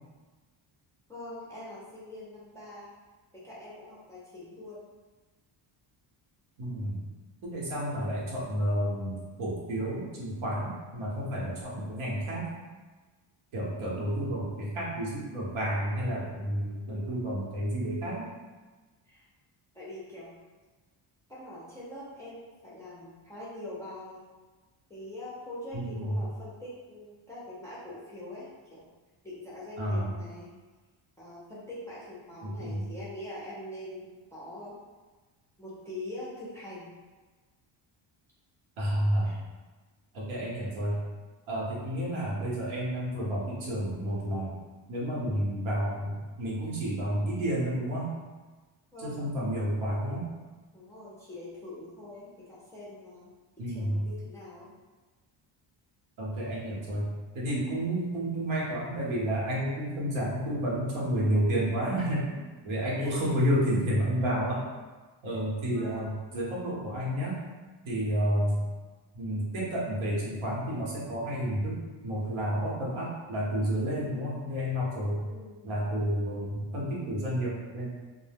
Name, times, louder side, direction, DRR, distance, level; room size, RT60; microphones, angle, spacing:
voice 1, 1.1-2.9 3.3-4.9 16.0-17.2 19.0-19.3 19.7-20.4 21.3-24.2 24.9-28.8 29.2-30.5 31.2-34.8 35.6-36.9 39.2-39.4 48.9-49.2 50.7-54.7 63.0-63.4 65.7-66.2 75.3-75.7, left 1 dB, 5° left, -9 dB, 0.4 m, -44 dB
voice 2, 6.6-7.0 7.4-12.5 13.5-18.3 25.7-26.2 29.8-30.1 32.4-32.8 38.8-39.4 40.1-41.0 41.5-44.5 44.9-48.1 49.0-50.3 53.6-54.0 56.2-57.1 57.3-64.6 65.2-67.4 67.8-68.6 69.1-75.3 75.6-77.9, equal, 80° right, -5 dB, 0.9 m, -30 dB
2.1 x 2.0 x 3.3 m, 1.3 s
cardioid pair, 145°, 48 cm